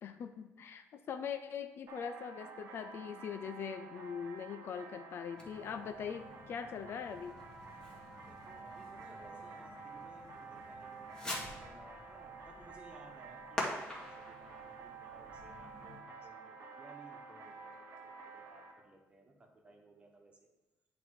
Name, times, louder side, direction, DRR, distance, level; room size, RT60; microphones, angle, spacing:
voice 1, 0.0-7.4, left 7 dB, 55° left, 9 dB, 0.5 m, -42 dB
sound 1, 1.9-18.7, right 4 dB, 70° right, 1.1 m, -51 dB
Fireworks, 5.3-16.0, left 1 dB, 15° left, 1.6 m, -47 dB
voice 2, 8.3-20.5, right 2 dB, 25° right, 1 dB, 1.3 m, -59 dB
9.8 x 3.5 x 4.8 m, 1.1 s
cardioid pair, 135°, 5 cm